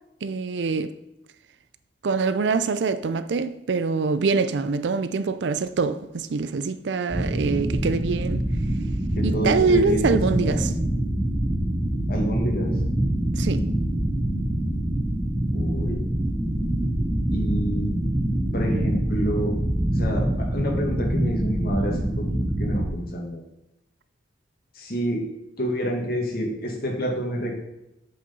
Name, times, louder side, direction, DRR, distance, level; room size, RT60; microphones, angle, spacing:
voice 1, 0.2-0.9 2.0-8.4 9.2-10.7 13.4-13.7, right 4 dB, 70° right, 0.4 m, -24 dB
sound 1, 7.1-22.9, right 1 dB, 5° right, 1.6 m, -25 dB
voice 2, 9.2-10.0 10.3-10.6 12.1-12.7 15.5-16.0 17.3-18.0 18.5-19.5 19.9-23.4 24.7-25.2 25.6-27.6, equal, 55° left, 2.2 m, -28 dB
7.8 x 6.6 x 5.4 m
head